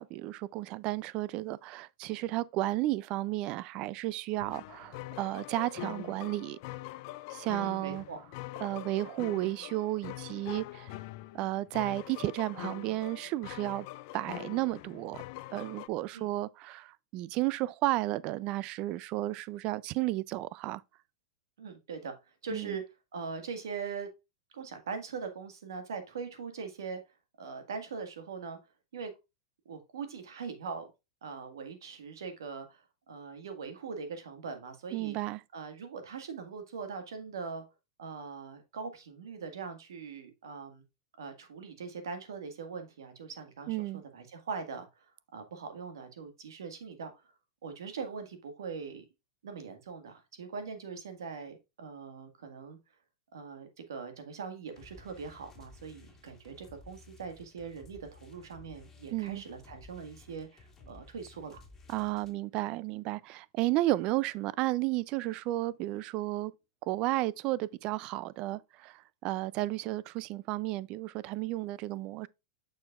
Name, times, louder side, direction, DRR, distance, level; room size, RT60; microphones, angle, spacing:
voice 1, 0.0-6.6 7.3-8.0 8.6-10.9 11.3-13.9 14.1-15.2 15.5-20.8 22.5-22.8 34.9-35.4 43.7-44.0 59.1-59.4 61.9-66.5 66.9-72.3, right 17 dB, 45° right, 0.4 m, -33 dB
sound 1, 4.4-15.9, left 18 dB, 55° left, 0.4 m, -44 dB
voice 2, 7.6-8.2 16.1-16.3 21.6-22.1 22.4-22.8 23.1-24.1 24.5-27.0 27.4-28.6 28.9-29.1 29.7-30.9 31.2-35.2 35.5-37.6 38.0-40.8 41.2-45.1 45.3-47.1 47.6-49.1 49.4-52.8 53.3-61.6, right 5 dB, 85° right, 1.7 m, -41 dB
sound 2, 54.7-62.3, left 3 dB, 15° left, 2.0 m, -55 dB
6.7 x 6.3 x 2.4 m
hypercardioid pair, 120°, 2 cm